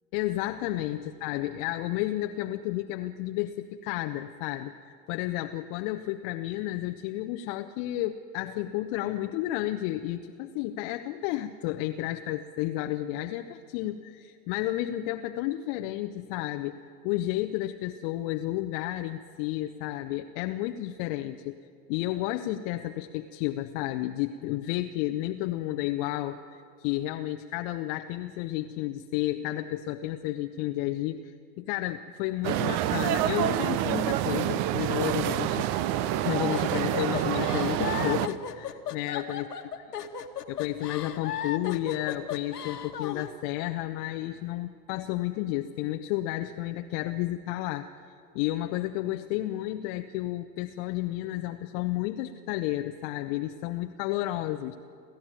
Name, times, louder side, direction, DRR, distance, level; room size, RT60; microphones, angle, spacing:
voice 1, 0.1-16.8 17.0-21.6 21.9-35.7 36.2-39.5 40.5-47.9 48.3-54.8, left 15 dB, 35° left, 6 dB, 0.8 m, -32 dB
sound 1, 32.4-38.3, right 12 dB, 35° right, 0.8 m, -27 dB
sound 2, 36.5-43.3, left 8 dB, 70° left, 1.6 m, -36 dB
30.0 x 13.0 x 8.9 m, 2.3 s
figure-of-eight pair, 90°, 48 cm